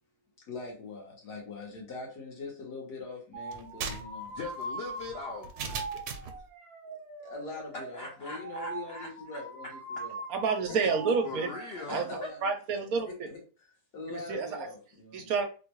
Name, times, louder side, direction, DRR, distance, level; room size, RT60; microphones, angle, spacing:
voice 1, 0.5-4.3 7.2-10.1 10.6-10.9 11.8-15.3, left 3 dB, 85° left, -1 dB, 1.8 m, -43 dB
sound 1, 3.3-12.2, right 2 dB, 50° right, 0.9 m, -42 dB
sound 2, 3.5-6.4, right 5 dB, 90° right, 1.2 m, -39 dB
voice 2, 4.4-5.8 7.9-9.1 11.2-12.3, left 3 dB, 70° left, 1 dB, 0.6 m, -40 dB
voice 3, 10.3-11.5 11.9-13.3 14.1-14.5 15.1-15.4, right 5 dB, 70° right, 6 dB, 1.0 m, -29 dB
3.6 x 2.3 x 3.0 m, 0.35 s
omnidirectional pair, 1.7 m